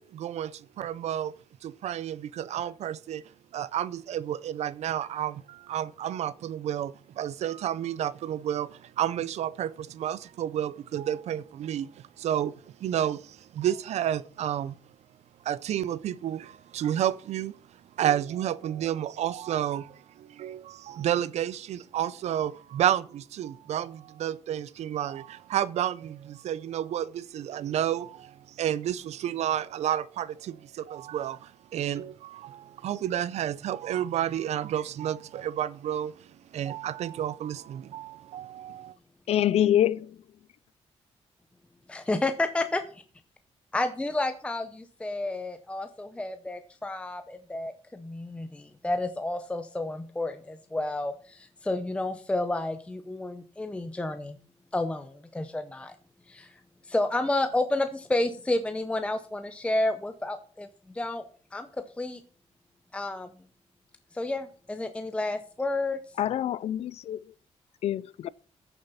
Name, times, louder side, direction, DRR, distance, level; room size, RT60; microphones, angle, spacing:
voice 1, 0.0-1.3 1.6-3.2 3.5-14.7 15.4-17.5 18.0-38.9, right 11 dB, 80° right, 0.5 m, -31 dB
voice 2, 39.3-40.1 66.2-67.2 67.8-68.3, left 11 dB, 65° left, 0.4 m, -25 dB
voice 3, 41.9-43.0 43.7-54.4 54.7-55.9 56.3-56.6 56.9-60.7 60.9-61.3 61.5-62.2 62.9-63.3 64.1-66.0, left 2 dB, 10° left, 0.6 m, -30 dB
14.5 x 6.8 x 4.1 m
wide cardioid pair, 150°, 11 cm